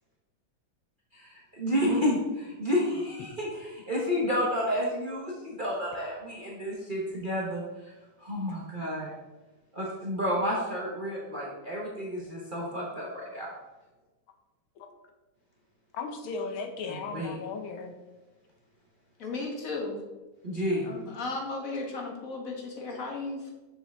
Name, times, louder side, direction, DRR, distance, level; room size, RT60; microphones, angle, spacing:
voice 1, 1.1-7.6 8.2-9.1 9.7-13.1 13.3-13.5 16.9-17.3 20.4-20.9, equal, 35° right, -4 dB, 0.8 m, -30 dB
voice 2, 15.9-17.9, left 4 dB, 80° left, 4 dB, 1.6 m, -36 dB
voice 3, 19.2-20.0 20.8-23.5, left 3 dB, 50° left, 0 dB, 1.3 m, -35 dB
6.3 x 5.9 x 3.5 m, 1.1 s
omnidirectional pair, 2.2 m